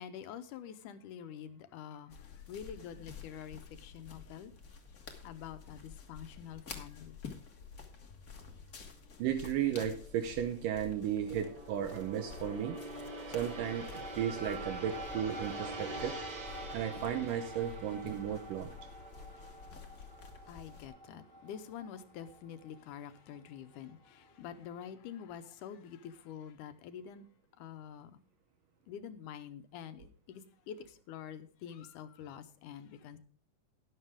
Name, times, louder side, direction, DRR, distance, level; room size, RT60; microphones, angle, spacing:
voice 1, 0.0-2.2 2.5-4.5 5.2-7.2 19.6-19.7 20.5-27.3 27.6-28.2 28.9-33.2, left 8 dB, 75° left, 2.3 m, -47 dB
sound 1, 2.1-20.9, left 6 dB, 45° left, 1.2 m, -51 dB
Gong, 8.9-21.3 21.7-21.9, right 2 dB, 45° right, 4.9 m, -47 dB
voice 2, 9.2-12.8 13.3-16.2 16.7-18.7, right 9 dB, 80° right, 2.5 m, -35 dB
sound 2, 13.5-24.3, right 1 dB, 5° left, 1.9 m, -49 dB
12.5 x 11.0 x 3.6 m
omnidirectional pair, 3.9 m